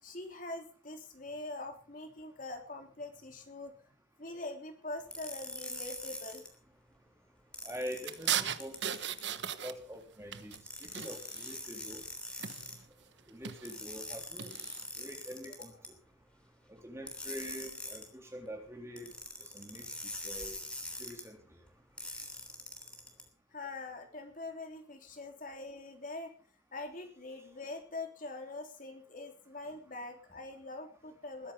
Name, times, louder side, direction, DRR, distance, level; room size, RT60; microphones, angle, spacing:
voice 1, 0.0-3.9 4.2-6.4 15.6-15.8 23.5-26.3 26.7-31.5, left 2 dB, 45° left, 4 dB, 3.5 m, -44 dB
sound 1, 5.1-6.5 7.5-9.2 10.5-12.8 13.7-15.9 17.1-18.1 19.0-21.2 22.0-23.2, left 1 dB, 5° left, 3.3 m, -43 dB
voice 2, 7.6-8.8 9.6-10.6 10.9-12.0 13.3-14.6 15.0-15.7 16.7-19.1 19.5-19.9 20.2-20.6 21.0-21.4, equal, 15° right, 3 dB, 3.5 m, -44 dB
sound 2, 8.1-10.0 10.3-11.6 12.4-12.8 13.3-13.7 14.4-14.8, right 9 dB, 75° right, 1.2 m, -37 dB
21.5 x 10.5 x 5.2 m, 0.41 s
head